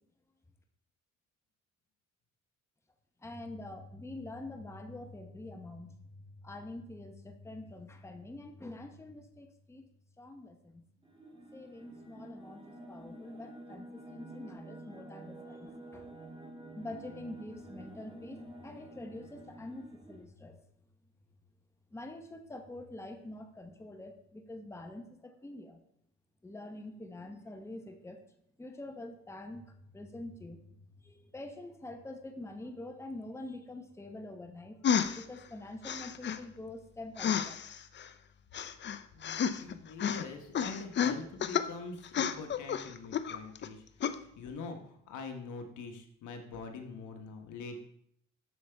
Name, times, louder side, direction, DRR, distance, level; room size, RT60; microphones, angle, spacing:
voice 1, 3.2-9.8 10.2-10.9 11.5-16.1 16.7-20.6 21.9-25.8 26.4-28.2 28.6-34.8 35.1-37.6, left 2 dB, 10° left, 5 dB, 0.8 m, -46 dB
sound 1, 11.0-20.2, right 1 dB, 15° right, 1.8 m, -49 dB
sound 2, 34.8-35.2 35.8-36.4 37.2-38.1 38.5-39.7 40.0-40.2 40.5-41.7 42.0-43.7 44.0-44.2, left 8 dB, 40° left, 0.5 m, -31 dB
voice 2, 39.1-47.9, left 4 dB, 80° left, 5 dB, 1.2 m, -44 dB
7.8 x 6.8 x 3.4 m, 0.69 s
cardioid pair, 90°, 30 cm